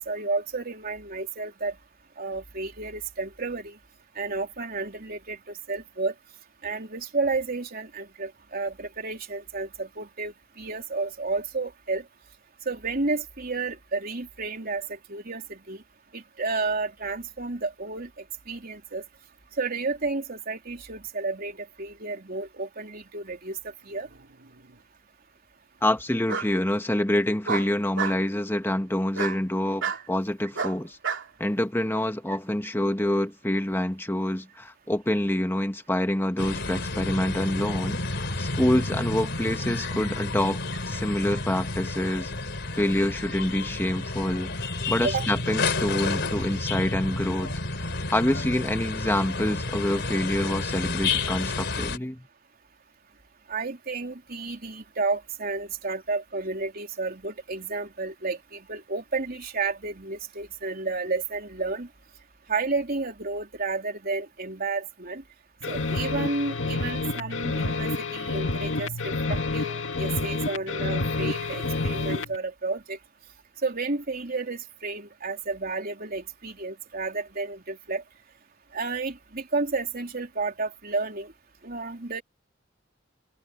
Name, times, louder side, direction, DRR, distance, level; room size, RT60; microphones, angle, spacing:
voice 1, 0.0-1.7 2.2-3.8 4.1-5.4 5.7-6.1 6.6-12.0 12.6-15.8 16.1-19.0 19.6-24.1 29.9-30.0 32.3-32.4 45.0-45.2 53.5-61.9 62.5-65.2 65.7-73.0 73.6-78.0 78.7-81.3 81.6-82.2, right 3 dB, 50° right, 3.6 m, -31 dB
Bark, 24.1-24.8 26.3-26.5 27.5-28.2 29.1-29.4 29.8-30.0 30.5-31.3, right 6 dB, 70° right, 3.1 m, -30 dB
voice 2, 25.8-31.0 31.4-40.6 40.9-42.3 42.7-52.3, left 1 dB, 10° left, 1.5 m, -27 dB
sound 1, 36.4-52.0, left 3 dB, 65° left, 3.8 m, -30 dB
sound 2, 65.6-72.4, left 3 dB, 85° left, 2.2 m, -29 dB
head